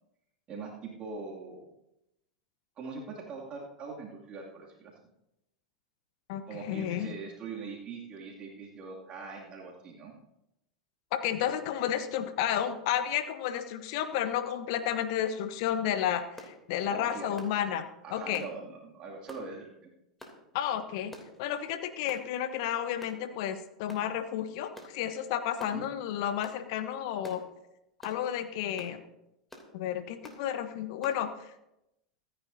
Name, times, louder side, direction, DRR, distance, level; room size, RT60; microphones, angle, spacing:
voice 1, 0.5-1.7 2.8-4.9 6.5-10.1 16.9-17.3 18.0-19.9 25.7-25.9, right 4 dB, 30° right, -3 dB, 2.6 m, -42 dB
voice 2, 6.3-7.1 11.2-17.9 18.1-18.4 20.5-21.1 21.4-27.4 28.0-29.0 29.7-31.5, left 10 dB, 50° left, 10 dB, 1.1 m, -32 dB
sound 1, 16.4-16.6 17.4-17.6 18.3-18.5 19.3-19.5 20.2-20.4 21.1-21.4 22.1-22.3 23.0-23.2 23.9-24.1 24.7-24.9 25.6-25.8 26.4-26.6 27.2-27.4 28.0-28.2 28.8-29.0 29.5-29.7 30.2-30.4 31.0-31.2, left 1 dB, 10° left, 3.0 m, -48 dB
25.5 x 10.0 x 2.8 m, 0.87 s
figure-of-eight pair, 85°, 3 cm